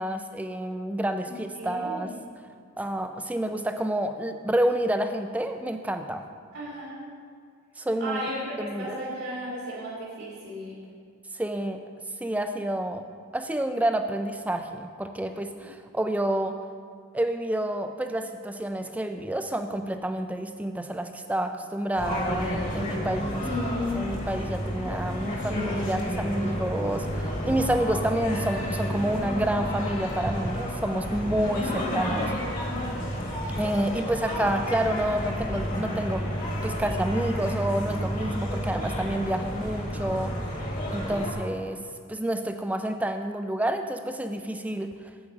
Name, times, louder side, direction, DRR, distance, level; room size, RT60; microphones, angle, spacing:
voice 1, 0.0-2.1 2.8-6.2 7.8-8.2 8.6-9.0 11.3-11.8 12.2-13.0 13.3-16.6 17.1-23.4 24.0-32.3 33.6-36.3 36.6-40.3 40.9-41.8 42.1-44.9, right 1 dB, 5° right, 7 dB, 0.3 m, -29 dB
voice 2, 1.6-2.3 6.5-7.1 8.0-10.8 23.4-24.0 31.9-32.3, left 1 dB, 70° right, -6 dB, 1.9 m, -34 dB
sound 1, 22.0-41.3, equal, 35° left, 1.5 m, -31 dB
8.5 x 5.0 x 7.2 m, 2.1 s
head